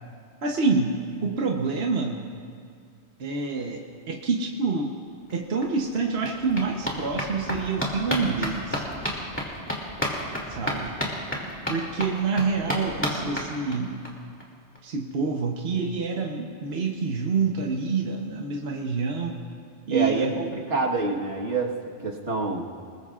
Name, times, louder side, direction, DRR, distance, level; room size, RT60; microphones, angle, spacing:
voice 1, 0.4-2.2 3.2-5.0 5.3-8.8 10.5-11.0 11.7-14.1 14.8-19.4 19.9-20.6, right 4 dB, 60° right, 1 dB, 1.3 m, -27 dB
sound 1, 5.3-5.4 5.6-14.1 14.4-14.5 14.8-14.9 15.1-15.2, equal, 10° left, 2.5 m, -32 dB
voice 2, 19.9-21.7 22.0-22.7, right 3 dB, 75° right, -1 dB, 1.9 m, -27 dB
27.5 x 20.5 x 2.5 m, 2.2 s
omnidirectional pair, 1.2 m